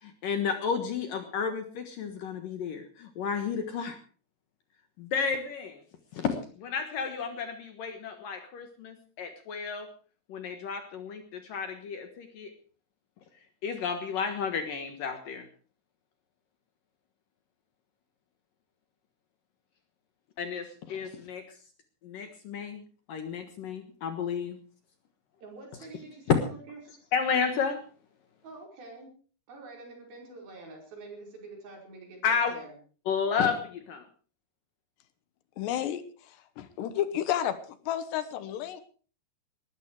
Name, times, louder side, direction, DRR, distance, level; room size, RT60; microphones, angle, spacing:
voice 1, 0.0-4.0 5.0-5.8 6.1-9.9 10.3-12.6 13.6-15.5 20.4-21.4 22.0-22.8 23.1-24.6 26.3-26.4 27.1-27.8 32.2-32.5 33.1-34.1, left 6 dB, 60° left, 7 dB, 2.7 m, -31 dB
voice 2, 25.4-26.8 28.4-29.1 29.5-32.7, right 3 dB, 55° right, 1 dB, 6.9 m, -46 dB
voice 3, 35.6-36.0 36.6-37.6 37.9-38.8, left 11 dB, 75° left, 12 dB, 3.2 m, -31 dB
20.0 x 13.5 x 4.8 m, 0.41 s
omnidirectional pair, 5.1 m